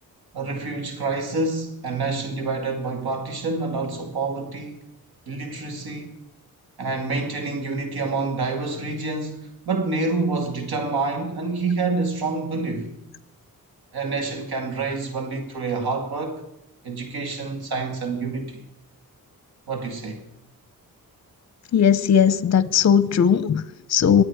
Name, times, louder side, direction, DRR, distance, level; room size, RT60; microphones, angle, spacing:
voice 1, 0.3-4.8 5.3-6.2 6.8-12.9 13.9-16.4 16.8-18.6 19.7-20.2, right 3 dB, 85° right, 2.3 m, -27 dB
voice 2, 21.7-24.2, left 8 dB, 45° left, 0.6 m, -18 dB
23.0 x 8.5 x 4.7 m
cardioid pair, 85°, 37 cm